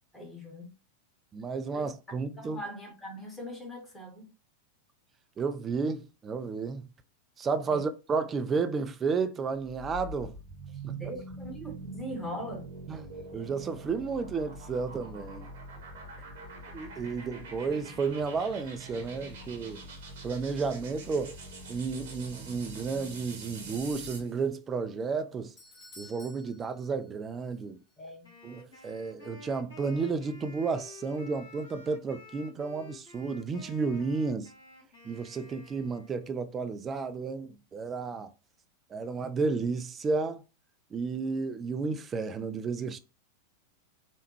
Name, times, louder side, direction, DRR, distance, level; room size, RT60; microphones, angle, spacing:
voice 1, 0.1-0.7 1.7-1.8 2.4-4.3 7.7-7.8 10.8-12.7 16.2-16.3 28.0-28.3, equal, 10° left, 1.1 m, -41 dB
voice 2, 1.3-2.6 5.4-6.9 7.4-10.3 10.8-11.0 12.9-13.1 13.3-15.5 16.7-19.8 20.2-21.4 21.7-25.5 26.0-27.8 28.4-34.5 35.0-38.3 38.9-40.4 40.9-43.0, right 4 dB, 20° right, 0.3 m, -32 dB
sound 1, 9.6-24.3, right 2 dB, 55° right, 0.9 m, -44 dB
Doorbell, 25.3-27.6 27.9-28.0 28.7-28.8, left 2 dB, 30° left, 1.1 m, -54 dB
Wind instrument woodwind instrument, 28.2-36.4, left 4 dB, 60° left, 1.7 m, -51 dB
3.4 x 2.1 x 2.9 m
figure-of-eight pair, 90°, 0 cm